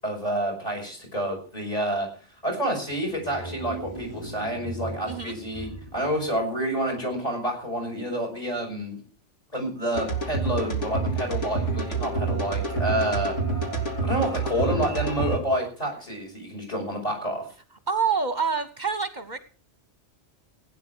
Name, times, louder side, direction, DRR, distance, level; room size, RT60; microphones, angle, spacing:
voice 1, 0.0-2.1 2.4-9.0 9.5-13.3 14.0-17.5, right 1 dB, 35° left, 3 dB, 6.4 m, -29 dB
sound 1, 2.9-7.1, right 2 dB, 20° left, 5.4 m, -38 dB
sound 2, 9.9-15.4, right 3 dB, 85° left, 3.2 m, -27 dB
voice 2, 17.9-19.4, right 5 dB, 45° right, 11 dB, 1.0 m, -26 dB
17.0 x 9.3 x 6.1 m, 0.39 s
omnidirectional pair, 1.2 m